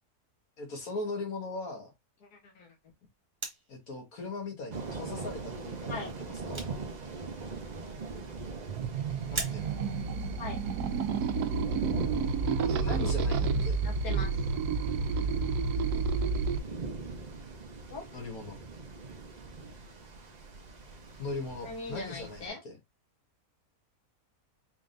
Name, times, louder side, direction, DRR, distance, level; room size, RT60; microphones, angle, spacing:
voice 1, 0.6-1.9 3.7-6.6 9.3-9.7 12.7-13.8 18.1-18.6 21.2-22.8, left 3 dB, 70° left, 2.0 m, -39 dB
voice 2, 2.2-2.7 5.9-6.1 10.4-10.6 13.8-14.4 17.9-18.0 21.6-22.6, left 3 dB, 90° left, 1.7 m, -40 dB
sound 1, 3.4-3.9 4.7-4.8 5.4-5.5 5.7-5.8 6.0-7.1 7.3-7.4 8.7-8.9 9.3-10.0 10.5-10.6, right 2 dB, 20° right, 1.0 m, -39 dB
sound 2, 4.7-22.5, right 4 dB, 35° right, 0.7 m, -42 dB
sound 3, 8.7-16.6, right 5 dB, 85° right, 1.2 m, -30 dB
4.7 x 3.5 x 2.5 m
omnidirectional pair, 1.6 m